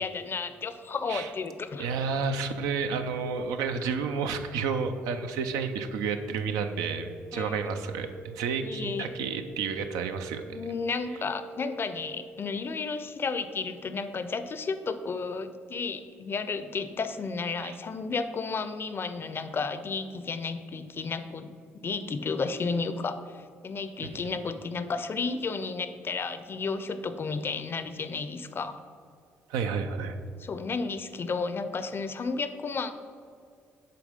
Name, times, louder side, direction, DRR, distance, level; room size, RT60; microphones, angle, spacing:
voice 1, 0.0-1.9 7.3-7.6 8.6-9.1 10.5-21.5 21.8-28.8 30.4-32.9, left 4 dB, 40° left, 11 dB, 0.5 m, -32 dB
voice 2, 1.8-10.6 17.6-17.8 24.0-24.1 29.5-30.2, right 5 dB, 75° right, 7 dB, 0.5 m, -31 dB
sound 1, 6.6-12.3, right 5 dB, 30° right, 0.9 m, -45 dB
6.7 x 3.7 x 5.1 m, 2.2 s
hypercardioid pair, 55°, 6 cm